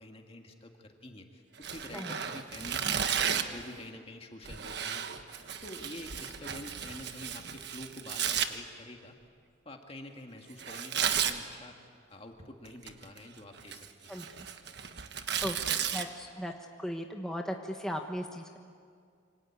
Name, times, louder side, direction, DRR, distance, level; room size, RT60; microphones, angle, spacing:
voice 1, 0.0-3.2 3.5-9.2 9.7-14.2, left 1 dB, 30° left, 3 dB, 1.9 m, -48 dB
Tearing, 1.6-3.6 4.4-8.5 10.6-11.4 12.7-13.2 13.6-16.0, right 8 dB, 60° right, 1.3 m, -33 dB
voice 2, 15.4-16.5 16.8-18.6, equal, 5° left, 2 dB, 1.2 m, -37 dB
27.0 x 25.0 x 8.6 m, 2.2 s
head